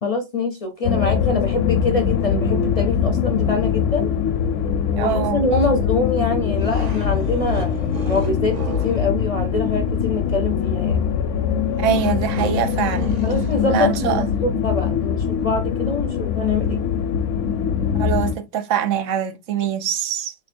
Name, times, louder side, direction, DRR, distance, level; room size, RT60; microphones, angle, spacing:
voice 1, 0.0-4.1 4.9-11.0 13.2-16.8, left 3 dB, 40° left, 0.5 m, -24 dB
sound 1, 0.8-18.4, left 7 dB, 75° left, 0.9 m, -22 dB
voice 2, 5.0-5.4 11.8-13.2 13.7-14.3 18.0-20.3, right 9 dB, 85° right, 1.0 m, -23 dB
sound 2, 6.4-9.1 11.7-14.0, right 4 dB, 40° right, 0.7 m, -36 dB
3.7 x 2.9 x 2.5 m
omnidirectional pair, 1.3 m